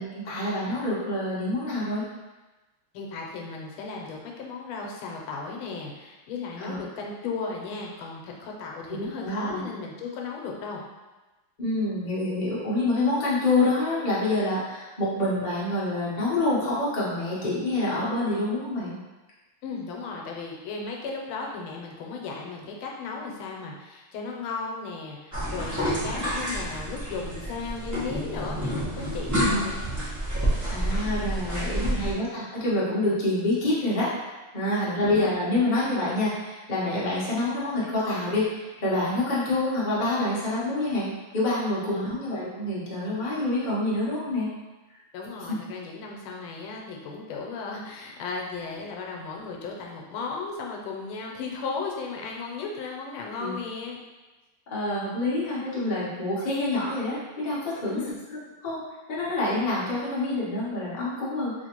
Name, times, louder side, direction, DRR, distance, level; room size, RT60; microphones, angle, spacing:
voice 1, 0.0-2.1 6.6-6.8 8.9-9.6 11.6-19.0 29.4-29.7 30.7-44.5 53.4-53.6 54.7-58.0 58.3-58.4 58.6-58.8 59.1-61.5, left 2 dB, 45° left, -8 dB, 0.5 m, -27 dB
voice 2, 2.9-10.8 19.6-29.8 31.8-32.0 34.9-35.3 41.9-42.1 45.1-54.0 57.9-58.2, left 4 dB, 90° left, 0 dB, 1.5 m, -35 dB
sound 1, 25.3-32.1, equal, 25° right, 0.3 m, -28 dB
3.3 x 3.1 x 2.9 m, 1.2 s
omnidirectional pair, 2.3 m